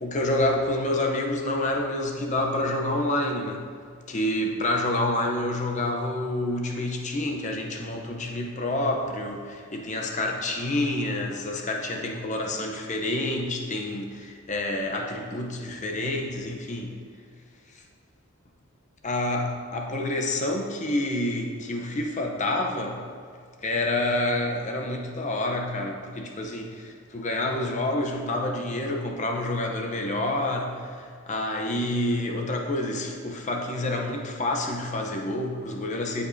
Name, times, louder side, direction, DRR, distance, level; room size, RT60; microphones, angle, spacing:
voice 1, 0.0-3.6 4.1-17.0 19.0-23.0 23.6-30.9 31.3-36.3, left 1 dB, 35° left, 1 dB, 0.7 m, -28 dB
15.0 x 5.2 x 2.7 m, 2.1 s
head